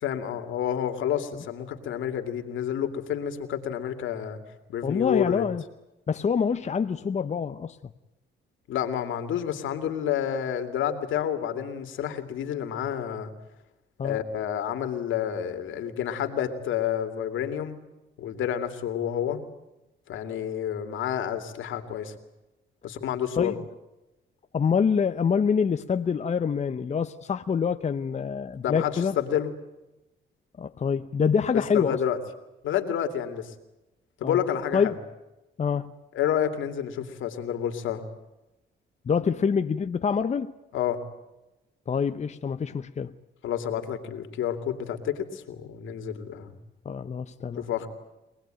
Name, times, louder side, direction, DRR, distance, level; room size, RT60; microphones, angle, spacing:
voice 1, 0.0-4.4 4.7-5.5 8.7-13.3 14.0-17.8 18.2-19.4 20.1-22.1 22.8-23.5 28.6-29.5 31.5-32.2 32.6-33.5 34.2-35.0 36.1-38.0 40.7-41.0 43.4-46.5 47.6-47.9, left 9 dB, 80° left, 2.6 m, -29 dB
voice 2, 4.8-5.6 6.1-7.8 14.0-14.2 23.4-23.6 24.5-29.2 30.6-32.0 34.2-34.4 34.7-34.9 35.6-35.9 39.1-40.5 41.9-43.1 46.8-47.6, left 6 dB, 35° left, 0.8 m, -26 dB
24.0 x 19.0 x 9.0 m
cardioid pair, 90°, 20 cm